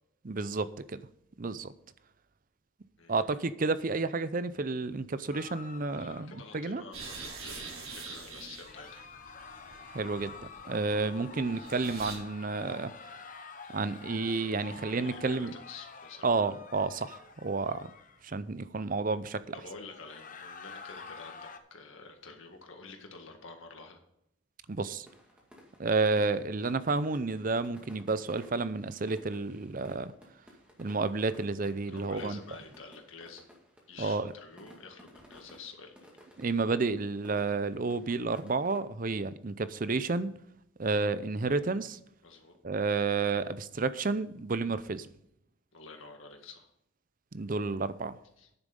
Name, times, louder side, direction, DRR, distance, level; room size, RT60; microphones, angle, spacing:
voice 1, 0.2-0.7 1.4-1.7 3.1-6.8 9.9-10.3 10.7-12.9 13.7-15.5 16.2-17.9 18.2-19.5 24.7-25.1 25.8-30.1 30.8-32.4 34.0-34.3 36.4-40.3 40.8-42.0 42.6-45.1 47.3-48.2, right 3 dB, 40° right, 0.5 m, -31 dB
sound 1, 5.3-6.9 8.6-18.2 19.9-21.6, left 4 dB, 40° left, 0.8 m, -48 dB
voice 2, 5.9-9.0 13.6-14.3 14.6-16.3 19.5-24.0 31.9-33.4 33.9-36.0 42.2-42.5 45.7-46.7 48.4-48.5, left 4 dB, 70° left, 1.9 m, -49 dB
sound 2, 6.9-12.2, right 4 dB, 80° right, 4.2 m, -45 dB
sound 3, 25.1-38.8, equal, 5° right, 2.1 m, -56 dB
9.8 x 7.3 x 5.3 m
head